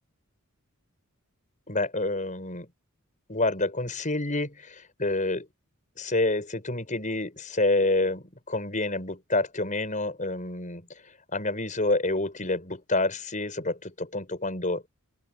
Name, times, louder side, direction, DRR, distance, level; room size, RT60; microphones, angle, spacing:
voice 1, 1.7-2.7 3.3-5.5 6.0-14.8, left 2 dB, 35° left, 6.8 m, -28 dB
open air
head